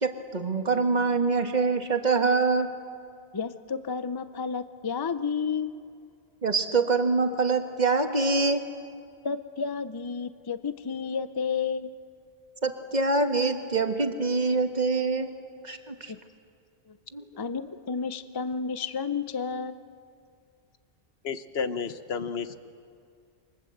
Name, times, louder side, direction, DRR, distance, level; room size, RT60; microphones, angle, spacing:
voice 1, 0.0-2.7 6.4-8.6 12.6-15.3 15.6-16.1 17.1-17.2, right 4 dB, 40° right, 6 dB, 1.7 m, -25 dB
voice 2, 3.3-5.7 9.2-12.0 16.1-16.2 16.9-17.0 17.4-19.8, left 5 dB, 25° left, 12 dB, 0.6 m, -31 dB
voice 3, 21.2-22.6, left 6 dB, 70° left, 11 dB, 1.3 m, -31 dB
28.0 x 23.5 x 7.9 m, 2.3 s
omnidirectional pair, 1.1 m